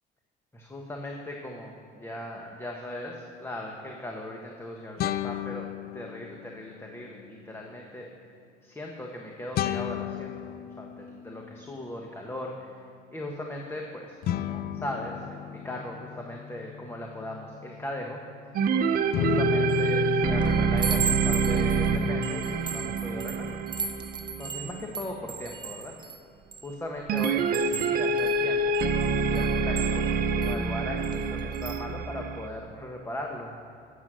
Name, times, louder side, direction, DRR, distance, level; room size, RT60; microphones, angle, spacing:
voice 1, 0.5-5.7 5.9-8.1 8.6-18.2 18.7-18.8 19.2-23.6 24.4-25.9 26.6-28.8 29.1-33.5, left 1 dB, 15° left, 0 dB, 1.3 m, -38 dB
sound 1, 3.0-3.1 5.0-6.7 9.5-11.9 14.2-18.6 19.1-22.3, left 11 dB, 65° left, 0.5 m, -33 dB
sound 2, 18.5-25.1 27.1-32.5, right 5 dB, 60° right, 0.7 m, -27 dB
Chime, 19.7-20.0 20.4-26.7 27.2-30.6 31.0-31.2 31.5-31.8, right 7 dB, 25° right, 0.8 m, -36 dB
12.0 x 8.4 x 6.2 m, 2.3 s
cardioid pair, 110°, 17 cm